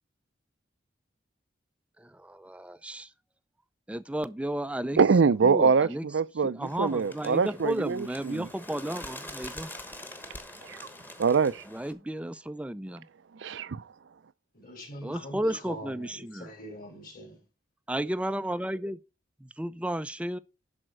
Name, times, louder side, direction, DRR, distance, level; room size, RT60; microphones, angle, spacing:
voice 1, 2.0-3.1 3.9-5.0 5.4-6.1 6.4-9.7 11.7-13.0 15.0-16.5 17.9-19.0 19.4-20.4, right 1 dB, 5° right, 0.4 m, -33 dB
voice 2, 5.0-8.5 10.7-10.8 11.2-11.6 13.4-13.8, right 5 dB, 70° right, 0.4 m, -24 dB
Bird, 6.6-11.9, left 1 dB, 10° left, 1.1 m, -44 dB
voice 3, 14.5-17.4, equal, 45° left, 3.6 m, -43 dB
11.0 x 4.3 x 6.3 m
head